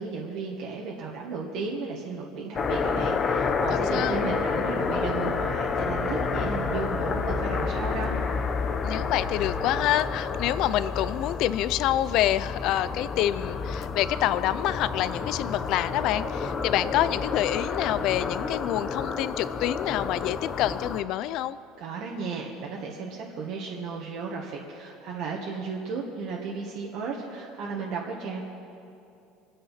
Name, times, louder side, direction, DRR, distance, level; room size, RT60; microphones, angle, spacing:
voice 1, 0.0-8.1 21.8-28.4, right 4 dB, 45° right, -2 dB, 1.6 m, -34 dB
sound 1, 2.6-21.0, left 5 dB, 25° left, 0.8 m, -29 dB
voice 2, 3.7-4.2 8.8-21.6, left 13 dB, 45° left, 16 dB, 0.4 m, -27 dB
26.0 x 9.4 x 5.8 m, 2.7 s
cardioid pair, 170°, 0 cm